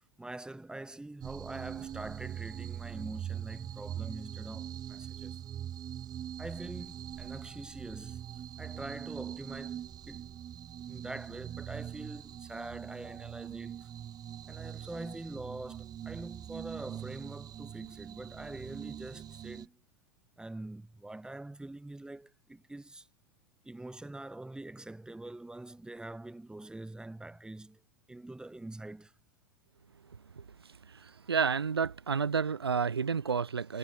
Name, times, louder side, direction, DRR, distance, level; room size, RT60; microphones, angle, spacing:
voice 1, 0.2-5.4 6.4-8.2 8.6-10.3 10.8-13.9 14.5-19.8 20.4-23.1 23.6-27.8 28.1-29.1, right 2 dB, 5° right, 7.4 m, -44 dB
sound 1, 1.2-19.7, right 10 dB, 30° right, 7.6 m, -42 dB
voice 2, 30.9-33.8, right 6 dB, 85° right, 2.4 m, -30 dB
figure-of-eight pair, 90°, 13 cm